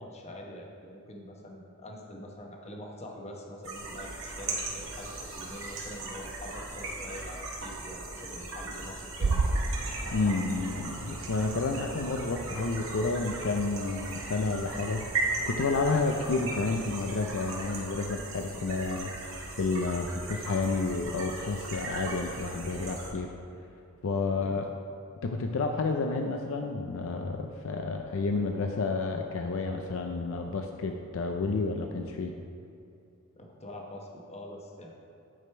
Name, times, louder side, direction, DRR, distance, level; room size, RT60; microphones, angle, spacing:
voice 1, 0.0-9.5 18.6-18.8 24.3-24.7 33.4-35.1, left 1 dB, 30° left, 0 dB, 1.0 m, -45 dB
sound 1, 3.6-23.1, right 2 dB, 65° right, 1.7 m, -38 dB
sound 2, 9.2-17.9, right 3 dB, 80° right, 0.5 m, -36 dB
voice 2, 10.1-19.1 19.5-23.3 24.0-24.7 25.2-32.3, left 3 dB, 65° left, 4 dB, 0.5 m, -30 dB
9.9 x 5.1 x 4.4 m, 2.7 s
head